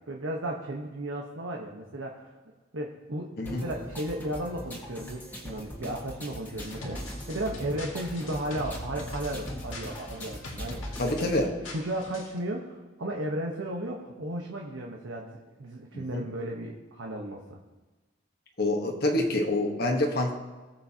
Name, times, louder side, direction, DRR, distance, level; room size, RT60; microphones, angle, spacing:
voice 1, 0.1-2.3 2.7-11.3 11.7-17.6, right 1 dB, 85° right, 0 dB, 1.1 m, -35 dB
sound 1, 3.5-11.5, equal, 10° left, 1.6 m, -42 dB
sound 2, 6.6-12.4, left 1 dB, 80° left, 1.9 m, -41 dB
voice 2, 11.0-11.5 15.9-16.2 18.6-20.3, left 1 dB, 50° left, 2 dB, 1.3 m, -27 dB
19.0 x 7.5 x 2.8 m, 1.2 s
head